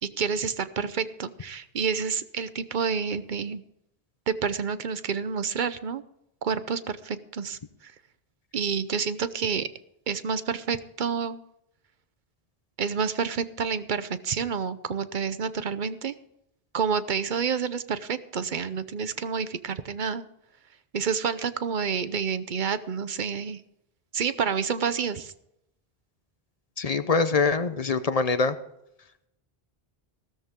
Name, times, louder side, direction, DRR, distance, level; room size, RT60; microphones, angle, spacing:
voice 1, 0.0-3.6 4.3-6.0 6.4-7.9 8.5-9.7 10.1-11.4 12.8-16.1 16.7-20.2 20.9-23.6 24.1-25.3, right 6 dB, 55° right, 13 dB, 0.9 m, -29 dB
voice 2, 26.8-28.6, left 4 dB, 40° left, 11 dB, 0.9 m, -24 dB
16.5 x 13.0 x 3.7 m, 0.80 s
omnidirectional pair, 1.0 m